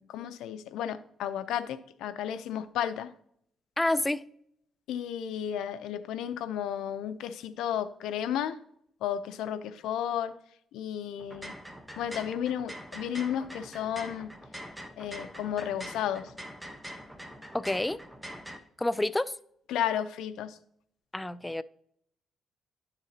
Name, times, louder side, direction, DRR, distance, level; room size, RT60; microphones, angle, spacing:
voice 1, 0.0-3.1 4.9-8.6 9.0-10.3 10.7-11.6 12.0-14.3 15.0-16.3 19.7-20.6, left 10 dB, 85° left, 0.6 m, -33 dB
voice 2, 3.8-4.2 17.5-18.0 18.8-19.3 21.1-21.6, left 1 dB, 10° left, 0.4 m, -28 dB
sound 1, 11.2-18.6, equal, 5° right, 1.0 m, -44 dB
10.5 x 6.9 x 2.8 m
cardioid pair, 90°, 0 cm